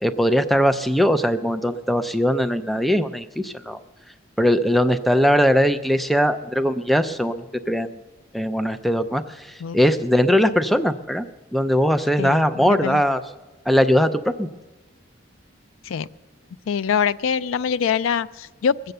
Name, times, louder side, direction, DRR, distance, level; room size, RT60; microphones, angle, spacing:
voice 1, 0.0-3.8 4.4-8.0 8.3-11.3 11.5-13.2 13.7-14.5, equal, ahead, 9 dB, 0.4 m, -20 dB
voice 2, 12.2-13.0 15.8-16.1 16.7-18.9, left 7 dB, 80° left, 18 dB, 0.4 m, -24 dB
21.0 x 8.0 x 6.6 m, 1.2 s
head